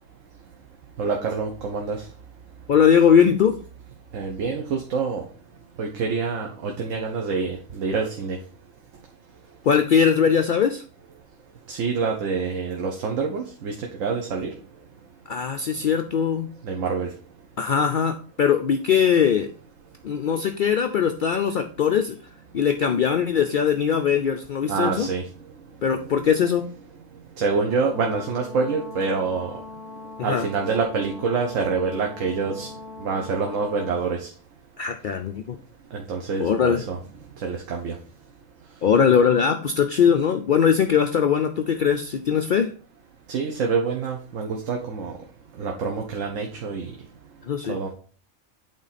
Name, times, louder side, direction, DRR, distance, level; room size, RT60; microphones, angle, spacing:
voice 1, 1.0-2.0 4.1-5.2 5.8-8.4 11.7-14.5 16.6-17.1 24.7-25.2 26.0-26.1 27.4-29.5 30.2-32.7 33.0-34.3 35.9-37.0 37.4-38.0 43.3-45.1 45.6-46.9 47.6-47.9, right 4 dB, 70° right, 1 dB, 1.2 m, -26 dB
voice 2, 2.7-3.6 9.6-10.8 15.3-16.5 17.6-19.5 20.0-22.2 22.5-25.1 25.8-26.7 30.2-30.5 34.8-35.6 36.4-36.9 38.8-42.7 47.4-47.8, left 7 dB, 80° left, 6 dB, 0.4 m, -20 dB
Brass instrument, 27.7-34.0, left 3 dB, 35° right, 2.7 m, -41 dB
8.5 x 3.7 x 4.1 m, 0.42 s
omnidirectional pair, 1.4 m